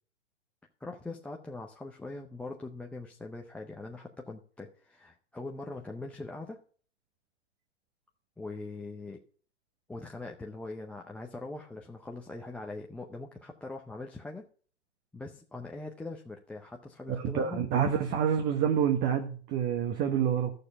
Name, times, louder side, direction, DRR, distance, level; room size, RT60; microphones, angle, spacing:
voice 1, 0.8-6.6 8.4-9.2 9.9-14.5 15.1-17.8, left 2 dB, 5° left, 0 dB, 0.5 m, -42 dB
voice 2, 17.1-20.5, right 8 dB, 30° right, 5 dB, 1.2 m, -27 dB
12.0 x 6.7 x 5.4 m, 0.42 s
hypercardioid pair, 130°, 34 cm